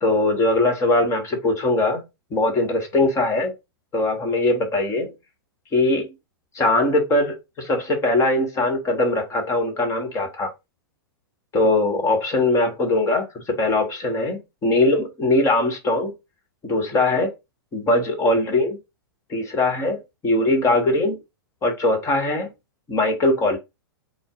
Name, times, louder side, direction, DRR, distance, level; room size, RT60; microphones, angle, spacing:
voice 1, 0.0-2.0 2.3-3.5 3.9-5.1 5.7-6.1 6.5-10.5 11.5-16.1 16.6-17.3 17.7-18.8 19.3-21.2 21.6-22.5 22.9-23.6, left 2 dB, 25° left, 1.4 m, -21 dB
4.5 x 2.2 x 4.7 m
hypercardioid pair, 115°, 13 cm